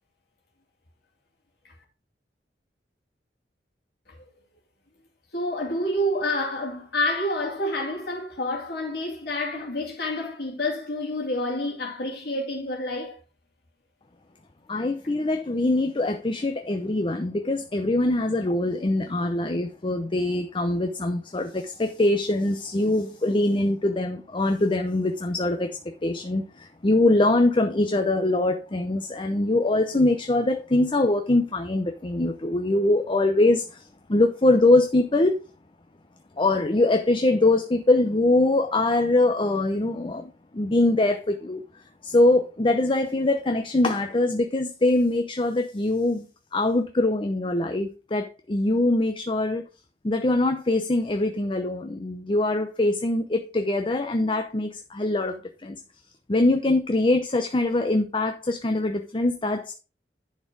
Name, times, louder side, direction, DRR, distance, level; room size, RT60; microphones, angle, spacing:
voice 1, 5.3-13.2, left 1 dB, 65° left, 2.5 m, -28 dB
voice 2, 14.7-33.8 34.1-35.4 36.4-41.6 42.0-46.3 46.5-49.6 50.0-55.8 56.3-59.7, left 2 dB, 30° left, 0.7 m, -23 dB
10.5 x 4.5 x 4.6 m
head